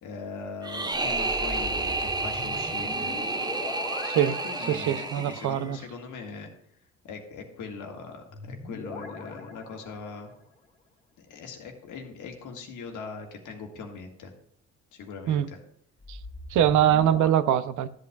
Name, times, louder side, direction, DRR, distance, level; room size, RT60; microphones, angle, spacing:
voice 1, 0.0-3.1 4.4-6.5 7.0-10.3 11.2-14.3 14.9-15.6, left 4 dB, 80° left, 1.6 m, -40 dB
sound 1, 0.6-5.8, right 3 dB, 15° right, 0.6 m, -30 dB
sound 2, 0.9-5.5 8.3-10.4 16.0-17.3, left 3 dB, 25° left, 2.0 m, -41 dB
voice 2, 4.0-4.3 4.7-5.8 15.3-15.5 16.1-16.2 16.5-17.9, right 10 dB, 75° right, 0.6 m, -23 dB
13.0 x 8.2 x 2.3 m
cardioid pair, 90°, 30 cm